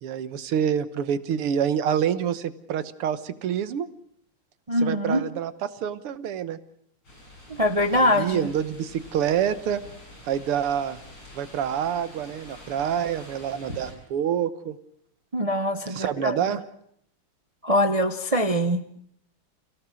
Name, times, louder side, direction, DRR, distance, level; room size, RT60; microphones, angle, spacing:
voice 1, 0.0-3.9 4.8-5.5 5.8-6.6 7.9-9.8 10.2-11.0 11.3-14.8 15.9-16.6, right 9 dB, 85° right, 13 dB, 2.1 m, -27 dB
voice 2, 4.7-5.2 7.5-8.5 15.3-16.6 17.6-19.0, left 1 dB, 55° right, 9 dB, 0.4 m, -23 dB
sound 1, 7.0-13.9, left 1 dB, 70° left, 7.9 m, -45 dB
28.5 x 17.0 x 6.3 m, 0.70 s
omnidirectional pair, 2.4 m